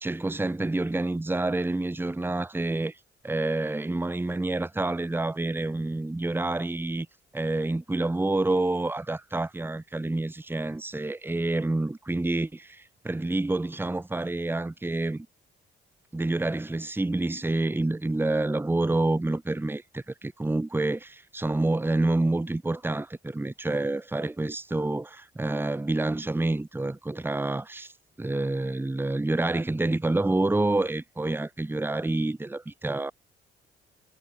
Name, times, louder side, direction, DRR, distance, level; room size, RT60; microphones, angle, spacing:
voice 1, 0.0-3.0 3.2-7.1 7.3-15.3 16.1-27.9 28.2-33.1, right 2 dB, 10° right, 1.3 m, -28 dB
cardioid pair, 90°, 20 cm